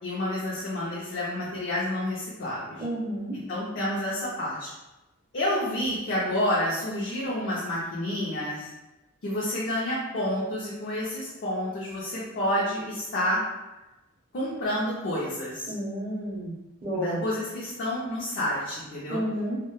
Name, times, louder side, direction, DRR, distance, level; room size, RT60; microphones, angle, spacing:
voice 1, 0.0-2.8 3.3-4.7 5.3-8.7 9.2-13.4 14.3-15.7 16.9-19.2, left 1 dB, 55° left, -6 dB, 0.5 m, -29 dB
voice 2, 2.8-3.3 15.7-16.5 16.8-17.2 19.1-19.6, equal, 25° right, -5 dB, 0.6 m, -30 dB
2.1 x 2.0 x 2.9 m, 1.1 s
head